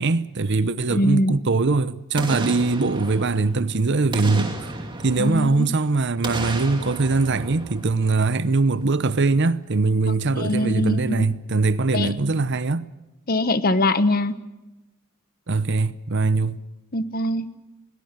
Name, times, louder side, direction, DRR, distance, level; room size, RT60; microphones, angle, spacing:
voice 1, 0.0-4.7 5.0-12.8 15.5-16.6, right 3 dB, 55° right, 0.8 m, -22 dB
voice 2, 0.8-1.3 5.2-5.7 10.1-11.3 11.9-12.1 13.3-14.3 16.9-17.5, left 1 dB, 45° left, 1.2 m, -23 dB
Boom, 2.2-3.7 4.1-5.8 6.2-8.5 8.8-8.9, right 2 dB, 20° right, 2.5 m, -33 dB
21.0 x 19.0 x 9.0 m
head